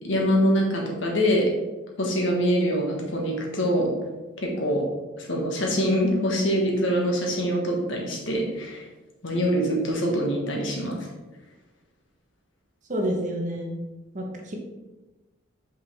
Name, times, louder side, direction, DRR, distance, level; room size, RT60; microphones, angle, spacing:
voice 1, 0.0-1.5 2.0-3.9 4.4-4.8 5.2-8.8 9.2-11.1, equal, 65° left, -1 dB, 1.3 m, -24 dB
voice 2, 12.9-13.8 14.1-14.5, equal, 35° right, 1 dB, 0.9 m, -29 dB
5.4 x 5.3 x 3.4 m, 1.1 s
head